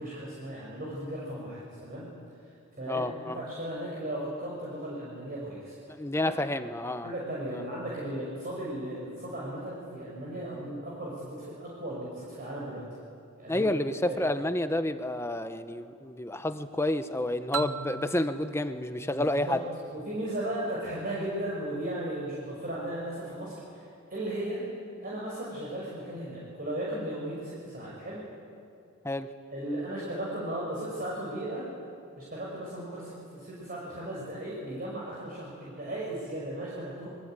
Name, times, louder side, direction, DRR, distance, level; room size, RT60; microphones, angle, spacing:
voice 1, 0.0-2.1 2.8-5.7 6.2-6.3 7.0-12.9 13.4-13.7 14.0-14.2 19.0-19.6 19.9-24.6 25.0-28.2 29.5-31.7 32.2-37.1, right 1 dB, 40° right, -5 dB, 5.9 m, -36 dB
voice 2, 2.9-3.4 5.9-7.1 7.5-7.6 13.5-19.6 29.0-29.3, left 1 dB, 10° left, 9 dB, 1.0 m, -30 dB
sound 1, 17.5-20.2, right 6 dB, 80° right, 0.7 m, -39 dB
26.0 x 23.0 x 9.1 m, 2.4 s
head